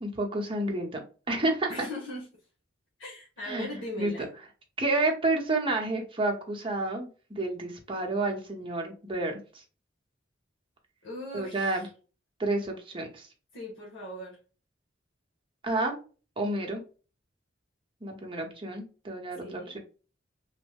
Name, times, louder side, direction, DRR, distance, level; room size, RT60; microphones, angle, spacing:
voice 1, 0.0-1.9 3.4-4.1 4.8-9.6 11.3-11.9 12.4-13.3 15.6-16.0 16.4-16.8 18.0-19.8, right 2 dB, 30° right, 0.8 m, -30 dB
voice 2, 1.7-2.3 3.0-4.3 11.0-11.9 13.5-14.4 19.4-19.7, left 1 dB, 90° left, 1.0 m, -39 dB
3.1 x 2.1 x 3.3 m
head